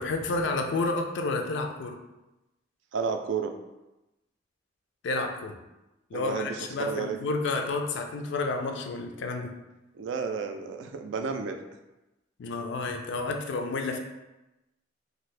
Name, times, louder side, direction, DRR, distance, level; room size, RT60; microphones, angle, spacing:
voice 1, 0.0-2.0 5.0-5.6 6.1-9.5 12.4-14.0, left 3 dB, 65° left, 4 dB, 0.4 m, -30 dB
voice 2, 2.9-3.5 6.1-7.2 9.9-11.6, right 5 dB, 65° right, 6 dB, 0.3 m, -32 dB
2.7 x 2.5 x 3.2 m, 0.99 s
head